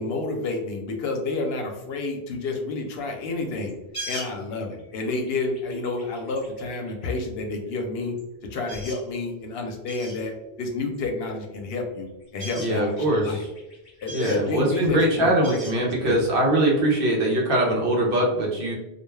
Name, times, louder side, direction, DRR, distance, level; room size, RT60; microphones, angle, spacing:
voice 1, 0.0-3.7 4.1-8.1 8.5-13.4 14.0-16.1, left 3 dB, 75° left, 2 dB, 0.8 m, -30 dB
sound 1, 3.7-7.2 7.8-7.9 8.2-8.3 8.5-9.1 9.4-9.5 9.9-10.2 10.9-11.7 12.0-16.6, right 1 dB, 30° left, 1.2 m, -41 dB
voice 2, 12.6-13.5 14.1-18.7, right 1 dB, 65° right, -1 dB, 0.8 m, -22 dB
2.3 x 2.2 x 3.1 m, 0.97 s
omnidirectional pair, 1.1 m